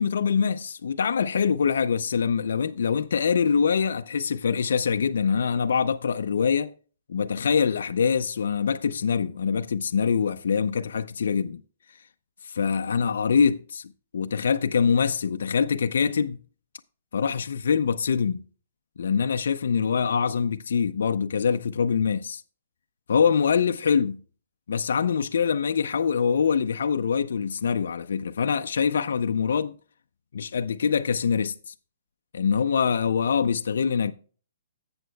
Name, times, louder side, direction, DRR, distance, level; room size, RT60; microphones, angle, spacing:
voice 1, 0.0-6.7 7.1-11.6 12.4-16.4 17.1-18.4 19.0-22.4 23.1-24.2 24.7-29.7 30.3-31.7 32.3-34.1, left 6 dB, 75° left, 0.5 m, -24 dB
14.0 x 7.9 x 2.3 m
hypercardioid pair, 160°, 0 cm